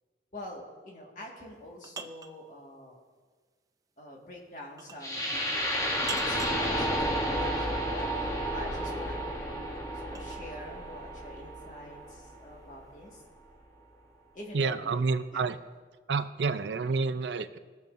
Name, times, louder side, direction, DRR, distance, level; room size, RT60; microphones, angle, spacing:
voice 1, 0.3-3.0 4.0-13.2 14.3-15.0 15.3-15.4, left 1 dB, 45° left, -2 dB, 1.8 m, -46 dB
sound 1, 1.4-2.4 4.8-5.1 6.0-6.7 8.9-10.5, right 5 dB, 20° right, 0.4 m, -42 dB
sound 2, 5.0-13.0, equal, 20° left, 1.0 m, -32 dB
voice 2, 14.5-15.6 16.1-17.6, right 4 dB, 80° right, 11 dB, 0.5 m, -29 dB
19.5 x 7.0 x 2.6 m, 1.4 s
head